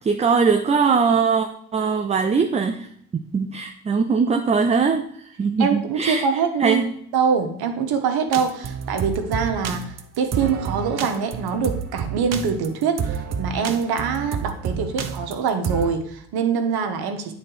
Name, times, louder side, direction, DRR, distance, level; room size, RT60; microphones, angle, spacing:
voice 1, 0.0-2.9 3.1-5.1 5.4-6.9, right 5 dB, 15° right, 7 dB, 0.4 m, -21 dB
voice 2, 5.6-6.8 7.1-17.3, right 6 dB, 55° right, 6 dB, 1.1 m, -24 dB
sound 1, 8.3-15.9, right 7 dB, 35° right, 0.8 m, -29 dB
8.9 x 4.0 x 4.6 m, 0.67 s
hypercardioid pair, 60°, 43 cm